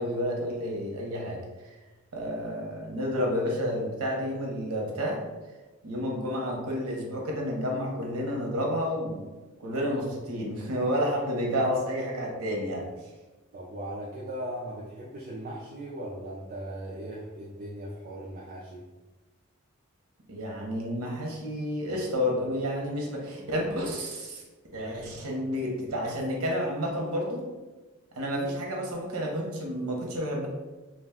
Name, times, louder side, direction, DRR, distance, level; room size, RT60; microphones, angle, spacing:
voice 1, 0.0-1.4 2.1-5.2 5.8-9.3 9.6-12.8 20.3-24.4 24.7-27.4 28.1-30.5, equal, 85° right, 0 dB, 0.7 m, -30 dB
voice 2, 13.5-18.8, right 1 dB, 40° right, -4 dB, 0.4 m, -38 dB
2.4 x 2.2 x 3.5 m, 1.2 s
head